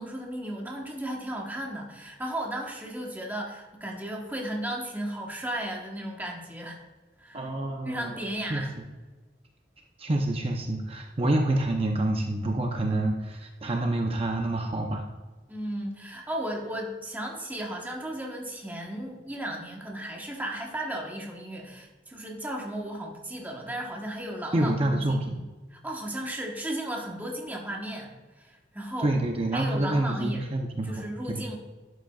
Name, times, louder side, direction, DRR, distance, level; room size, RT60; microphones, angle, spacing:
voice 1, 0.0-6.8 7.2-7.4 7.9-8.7 15.5-25.2 25.7-28.1 28.4-29.1 29.5-30.4 30.8-31.6, right 1 dB, 10° right, -1 dB, 1.2 m, -35 dB
voice 2, 7.3-8.6 10.0-15.1 24.5-25.4 29.0-31.4, right 1 dB, 30° right, 2 dB, 0.7 m, -27 dB
11.5 x 7.9 x 2.4 m, 1.3 s
head